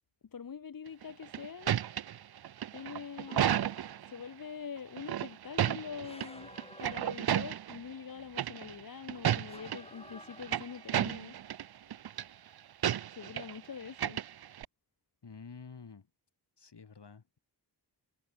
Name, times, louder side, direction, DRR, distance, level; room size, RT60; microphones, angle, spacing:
voice 1, 0.3-1.7 2.7-3.7 4.1-6.5 6.8-11.4 13.1-14.2, left 6 dB, 50° left, 0.8 m, -44 dB
sound 1, 1.0-4.1 5.0-6.3 6.6-7.8 8.4-8.8 9.1-9.8 10.2-11.6 11.9-12.2 12.8-13.6 13.9-14.6, right 10 dB, 65° right, 0.5 m, -32 dB
sound 2, 3.3-4.3 6.0-7.8 9.5-11.1, left 2 dB, 15° left, 1.2 m, -54 dB
Piano, 5.9-12.3, right 5 dB, 80° right, 2.3 m, -60 dB
voice 2, 15.2-16.1 16.6-17.4, left 5 dB, 70° left, 2.7 m, -50 dB
wide cardioid pair, 75°, 42 cm